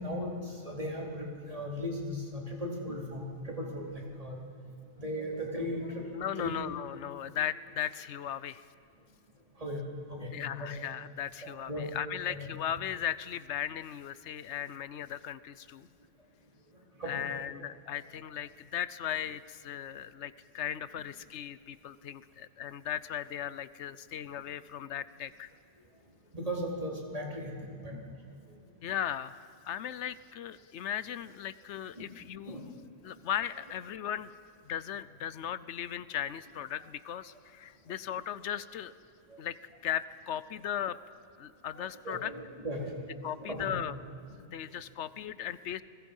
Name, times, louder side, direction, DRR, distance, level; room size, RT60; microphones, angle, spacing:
voice 1, 0.0-4.4 5.0-6.1 6.4-6.5 9.6-9.8 10.1-10.8 11.4-11.9 12.3-12.4 17.0-17.2 26.3-28.0 28.5-28.6 32.0-32.1 32.5-32.6 41.7-42.4 42.6-43.8, equal, 30° right, -2 dB, 4.1 m, -37 dB
voice 2, 6.1-8.7 10.3-15.9 17.0-25.5 28.8-32.6 33.0-34.3 34.6-38.9 39.4-39.6 39.8-41.0 41.4-42.3 43.2-43.9 44.5-45.8, left 10 dB, 85° left, 16 dB, 1.0 m, -37 dB
29.5 x 21.0 x 5.5 m, 2.5 s
omnidirectional pair, 1.2 m